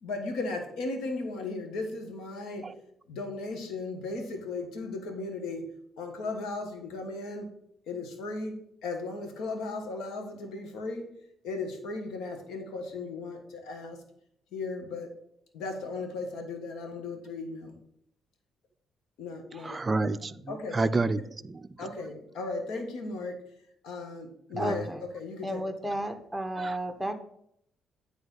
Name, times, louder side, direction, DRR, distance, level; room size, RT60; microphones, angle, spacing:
voice 1, 0.0-2.7 3.1-5.7 6.0-7.5 7.9-8.5 8.8-11.1 11.4-14.0 14.5-15.1 15.5-17.8 19.2-20.1 20.5-20.8 21.8-23.4 23.8-26.0, left 3 dB, 90° left, 4 dB, 1.3 m, -36 dB
voice 2, 19.5-21.9 24.5-24.9 26.6-26.8, right 3 dB, 25° right, 11 dB, 0.4 m, -30 dB
voice 3, 24.6-25.0 25.4-27.1, right 1 dB, ahead, 5 dB, 1.0 m, -32 dB
9.1 x 3.4 x 5.4 m, 0.73 s
cardioid pair, 90°, 0 cm